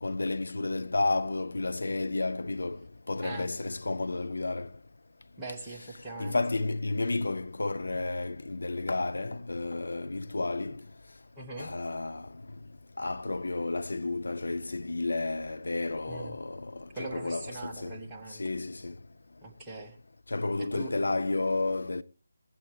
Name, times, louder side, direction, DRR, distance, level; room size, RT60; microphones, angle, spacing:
voice 1, 0.0-2.8 3.1-4.7 6.2-10.8 11.6-12.3 13.0-17.9 18.4-18.9 20.3-22.0, left 2 dB, 55° left, 0.7 m, -31 dB
voice 2, 5.4-6.4 11.3-11.7 16.1-16.4 16.9-18.4 19.4-20.0 20.6-20.9, right 2 dB, 10° right, 1.3 m, -41 dB
19.0 x 8.5 x 3.4 m
figure-of-eight pair, 155°, 0 cm